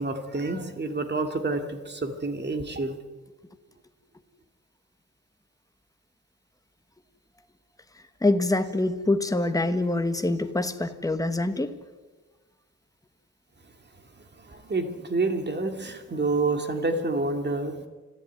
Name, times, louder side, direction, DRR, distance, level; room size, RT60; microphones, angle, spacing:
voice 1, 0.0-3.0 14.5-17.9, right 3 dB, 35° right, 6 dB, 2.4 m, -28 dB
voice 2, 8.2-11.7, left 2 dB, 10° left, 8 dB, 1.2 m, -25 dB
25.0 x 13.5 x 9.5 m, 1.3 s
wide cardioid pair, 145°, 31 cm